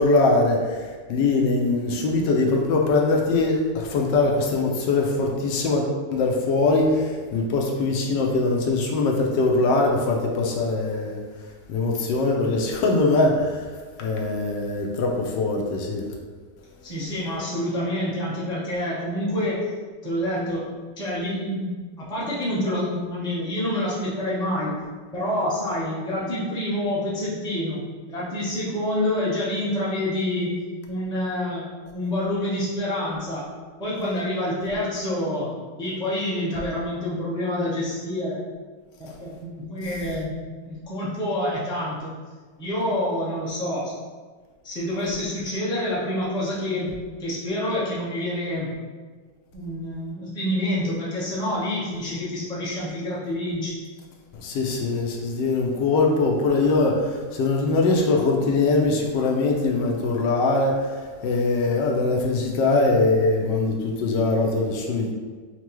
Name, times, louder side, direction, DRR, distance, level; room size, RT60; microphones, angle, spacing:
voice 1, 0.0-5.8 6.1-11.2 11.7-13.7 14.0-16.1 54.4-61.0 61.2-65.1, left 3 dB, 80° left, 0 dB, 1.3 m, -22 dB
voice 2, 16.8-19.6 20.0-20.7 21.0-24.7 25.1-27.8 28.1-30.5 30.9-31.6 31.9-33.4 33.8-35.5 35.8-38.4 39.0-40.3 40.6-42.1 42.6-43.9 44.6-48.8 49.5-53.7, left 1 dB, 5° left, -8 dB, 0.5 m, -27 dB
5.6 x 2.2 x 3.0 m, 1.5 s
omnidirectional pair, 1.9 m